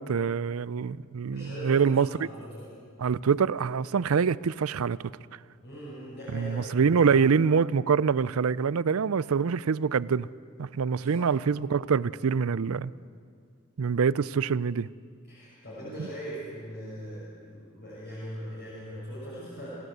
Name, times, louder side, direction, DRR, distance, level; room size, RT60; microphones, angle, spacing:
voice 1, 0.0-2.3 3.0-5.0 6.3-10.3 10.6-12.9 13.8-14.9 16.0-16.1, right 6 dB, 85° right, 0.5 m, -25 dB
voice 2, 1.2-2.7 5.6-7.4 11.0-11.3 15.3-19.8, equal, 50° left, 6.0 m, -41 dB
27.5 x 15.0 x 8.1 m
head